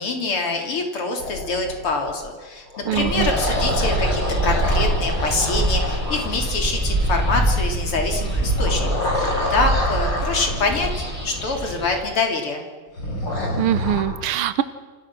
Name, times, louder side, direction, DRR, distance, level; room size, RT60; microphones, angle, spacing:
voice 1, 0.0-10.9 11.2-12.6, left 3 dB, 85° left, 3 dB, 4.1 m, -25 dB
sound 1, 1.2-2.1 2.7-6.9 8.2-11.4 13.0-14.0, left 1 dB, 55° left, 6.9 m, -28 dB
sound 2, 2.9-12.0, right 1 dB, 5° right, 7.3 m, -24 dB
voice 2, 2.9-3.3 13.6-14.6, right 12 dB, 85° right, 13 dB, 1.9 m, -22 dB
29.0 x 26.0 x 6.2 m, 1.4 s
omnidirectional pair, 2.4 m